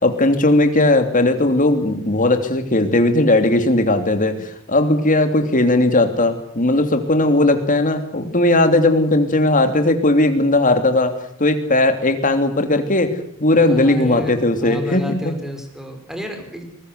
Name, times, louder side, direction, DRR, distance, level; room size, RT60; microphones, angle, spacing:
voice 1, 0.0-11.1 11.4-15.3, left 2 dB, 40° left, 7 dB, 3.0 m, -17 dB
voice 2, 13.7-16.7, left 1 dB, ahead, 5 dB, 5.2 m, -30 dB
23.0 x 21.0 x 8.2 m, 0.66 s
head